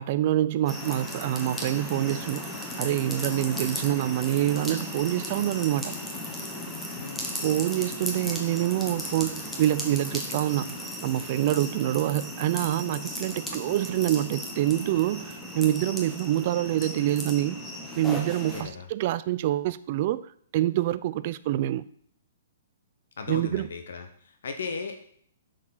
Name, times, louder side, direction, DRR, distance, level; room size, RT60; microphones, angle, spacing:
voice 1, 0.0-6.0 7.4-17.6 18.0-21.8 23.3-23.7, right 13 dB, 35° right, 0.3 m, -26 dB
sound 1, 0.7-18.6, left 1 dB, 5° left, 1.0 m, -36 dB
voice 2, 6.9-7.3 18.4-18.9 23.2-25.1, left 5 dB, 70° left, 0.9 m, -37 dB
8.4 x 6.4 x 3.9 m
hypercardioid pair, 165°, 0 cm